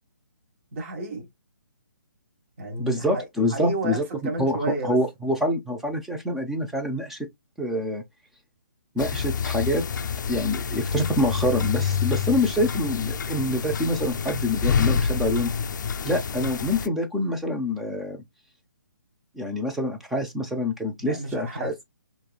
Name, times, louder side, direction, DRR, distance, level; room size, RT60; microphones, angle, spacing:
voice 1, 0.7-1.3 2.6-3.2 3.5-5.0 21.0-21.7, right 2 dB, 40° right, 1.5 m, -31 dB
voice 2, 2.8-4.0 4.4-7.3 7.6-8.0 8.9-9.8 10.3-15.5 16.0-18.2 19.4-21.8, left 1 dB, ahead, 0.4 m, -26 dB
sound 1, 9.0-16.9, left 6 dB, 65° left, 0.4 m, -27 dB
4.5 x 3.0 x 2.3 m
hypercardioid pair, 160°, 11 cm